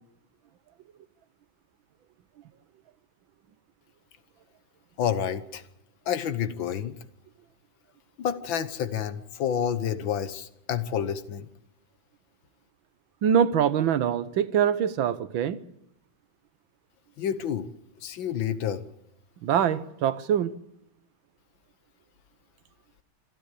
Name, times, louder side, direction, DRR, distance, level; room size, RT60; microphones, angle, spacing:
voice 1, 5.0-5.6 6.1-7.0 8.2-11.5 17.2-17.7 18.0-18.8, left 8 dB, 70° left, 1.8 m, -29 dB
voice 2, 13.2-15.6 19.4-20.5, right 8 dB, 75° right, 1.7 m, -24 dB
25.5 x 13.0 x 8.3 m
omnidirectional pair, 2.2 m